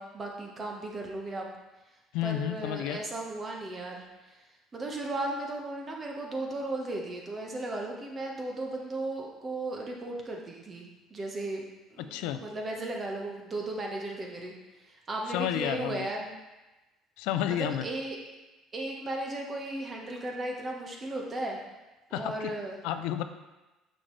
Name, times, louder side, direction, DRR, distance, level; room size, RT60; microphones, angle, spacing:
voice 1, 0.0-1.5 2.2-4.4 4.7-11.6 11.9-14.5 14.9-16.3 17.4-18.2 18.7-21.6 22.1-22.8, right 2 dB, 25° right, 0 dB, 1.2 m, -36 dB
voice 2, 2.1-3.0 12.0-12.4 15.3-16.1 17.2-17.9 22.1-22.5 22.8-23.2, left 11 dB, 85° left, 10 dB, 0.4 m, -31 dB
6.3 x 5.8 x 3.2 m, 1.1 s
cardioid pair, 115°, 0 cm